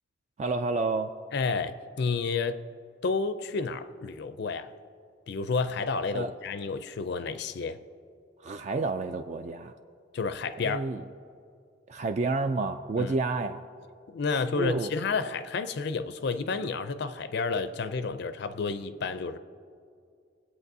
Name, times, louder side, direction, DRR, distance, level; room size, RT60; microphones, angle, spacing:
voice 1, 0.4-1.1 6.1-6.3 8.4-9.7 10.6-11.0 11.9-13.6 14.6-14.9, right 3 dB, 40° right, 7 dB, 0.3 m, -29 dB
voice 2, 1.3-2.6 3.0-4.7 5.3-7.8 10.1-10.9 13.0-13.1 14.1-19.4, left 4 dB, 60° left, 11 dB, 0.4 m, -30 dB
20.5 x 8.2 x 2.7 m, 2.3 s
head